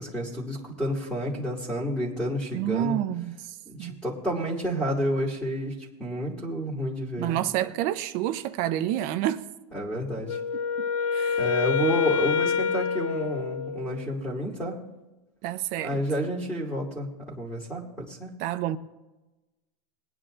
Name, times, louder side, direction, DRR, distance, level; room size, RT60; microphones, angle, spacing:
voice 1, 0.0-3.0 3.7-5.7 6.0-7.4 9.7-10.4 11.4-14.8 15.8-18.3, equal, ahead, 2.4 m, -30 dB
voice 2, 2.5-4.0 7.2-9.4 10.8-10.9 11.1-11.5 15.4-16.0 18.4-18.8, right 12 dB, 45° right, 0.7 m, -29 dB
Wind instrument woodwind instrument, 10.3-14.2, left 6 dB, 60° left, 0.8 m, -27 dB
22.0 x 9.6 x 2.6 m
supercardioid pair, 145°, 21 cm